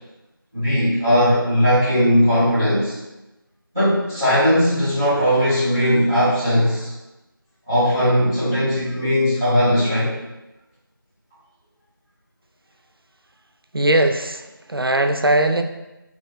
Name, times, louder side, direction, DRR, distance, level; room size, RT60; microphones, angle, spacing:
voice 1, 0.5-2.9 3.7-6.9 7.7-10.1, equal, 10° left, -20 dB, 1.5 m, -18 dB
voice 2, 13.7-15.6, right 1 dB, 80° right, 6 dB, 0.5 m, -19 dB
3.9 x 3.2 x 3.0 m, 1.0 s
figure-of-eight pair, 175°, 12 cm